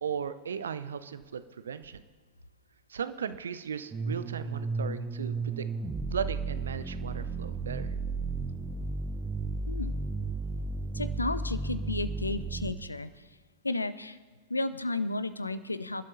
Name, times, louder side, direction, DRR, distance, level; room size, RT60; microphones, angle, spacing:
voice 1, 0.0-2.0 2.9-5.6 6.1-7.9, right 7 dB, 70° right, 13 dB, 0.6 m, -36 dB
sound 1, 3.9-12.7, right 3 dB, 20° right, 0.9 m, -34 dB
voice 2, 10.9-13.3 13.6-14.2 14.5-16.0, left 2 dB, 80° left, 15 dB, 0.6 m, -33 dB
27.5 x 12.0 x 2.8 m, 1.4 s
figure-of-eight pair, 90°, 0 cm